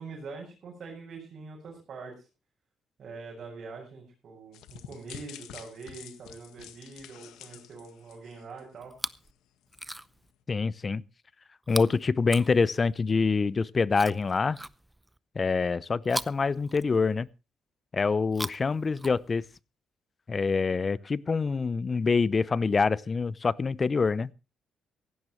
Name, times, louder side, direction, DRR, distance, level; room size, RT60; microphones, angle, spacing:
voice 1, 0.0-2.3 3.0-8.9, right 4 dB, 55° right, 7.1 m, -44 dB
sound 1, 4.5-8.8 9.1-9.3 9.7-9.8, left 10 dB, 90° left, 1.6 m, -48 dB
Chewing mastication, 8.8-9.3 9.7-10.3 11.6-13.0 13.9-15.2 16.0-17.3 18.2-19.6 20.5-20.6, right 1 dB, 5° right, 0.6 m, -40 dB
voice 2, 10.5-11.0 11.7-14.6 15.4-17.3 17.9-19.4 20.3-24.3, left 4 dB, 35° left, 0.6 m, -26 dB
16.5 x 16.0 x 3.1 m
cardioid pair, 90°, 0 cm